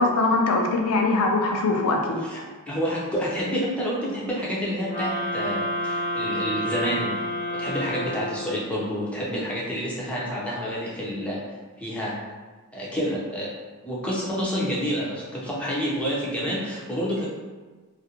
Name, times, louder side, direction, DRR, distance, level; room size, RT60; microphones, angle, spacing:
voice 1, 0.0-2.2, left 2 dB, 80° left, 2 dB, 0.4 m, -22 dB
voice 2, 2.2-7.2 7.5-11.4 11.8-12.2 12.7-13.5 13.8-17.3, equal, 5° left, -6 dB, 0.5 m, -28 dB
sound 1, 4.9-8.8, equal, 50° left, 0.7 m, -29 dB
2.4 x 2.1 x 2.8 m, 1.3 s
head